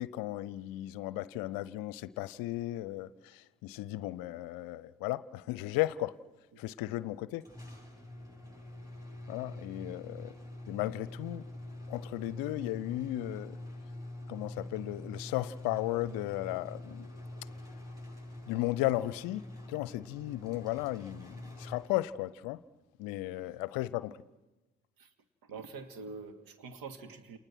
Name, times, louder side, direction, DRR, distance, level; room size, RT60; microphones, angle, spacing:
voice 1, 0.0-6.2 6.6-7.5 9.3-10.3 10.7-11.5 11.9-13.6 14.3-17.1 18.5-22.6 23.0-24.2, left 16 dB, 55° left, 0.8 m, -35 dB
sound 1, 7.4-22.3, left 1 dB, 10° right, 7.9 m, -45 dB
voice 2, 25.4-27.4, right 4 dB, 55° right, 2.5 m, -45 dB
29.5 x 29.0 x 6.2 m
figure-of-eight pair, 45°, 41 cm